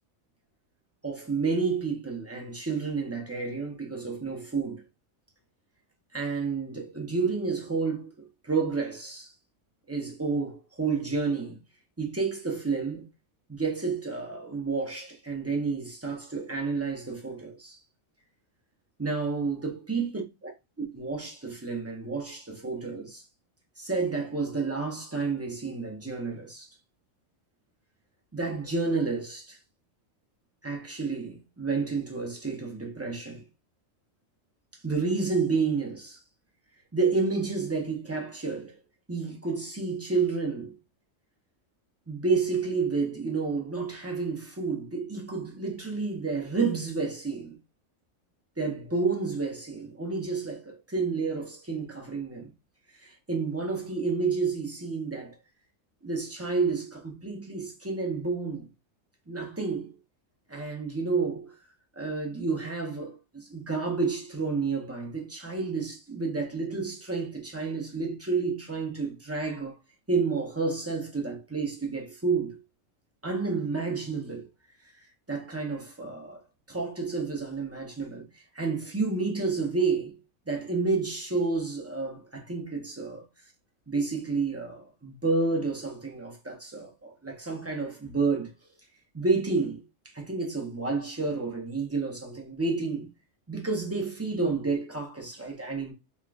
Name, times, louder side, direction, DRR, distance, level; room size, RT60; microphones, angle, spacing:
voice 1, 1.0-4.8 6.1-9.3 9.9-11.6 12.0-13.1 13.5-17.8 19.0-20.5 21.0-23.2 23.8-26.7 28.3-29.6 30.6-33.4 34.8-36.2 36.9-38.8 39.1-40.7 42.1-47.6 48.6-52.5 52.9-55.4 56.0-58.7 59.3-59.9 60.5-61.5 62.0-69.8 70.1-72.6 73.2-74.5 74.9-76.4 76.7-78.3 78.5-80.2 80.5-83.2 83.9-88.5 89.1-89.8 90.0-93.1 93.5-95.9, right 4 dB, 20° right, 0.4 m, -30 dB
3.8 x 3.1 x 2.4 m
omnidirectional pair, 1.4 m